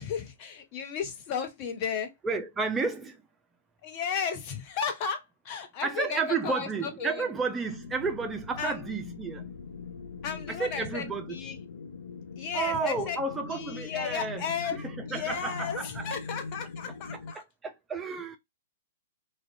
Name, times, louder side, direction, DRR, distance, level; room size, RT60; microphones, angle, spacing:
voice 1, 0.0-2.1 3.8-7.2 8.6-8.8 10.2-11.6 12.4-13.2 13.4-14.8 15.0-17.4, left 7 dB, 40° left, 0.7 m, -34 dB
voice 2, 2.2-3.2 5.8-9.5 10.5-11.4 12.5-14.4 14.7-16.1 17.4-18.4, right 4 dB, 15° right, 0.4 m, -32 dB
sound 1, 7.6-17.3, left 4 dB, 70° left, 0.3 m, -42 dB
2.4 x 2.1 x 2.6 m
figure-of-eight pair, 115°, 0 cm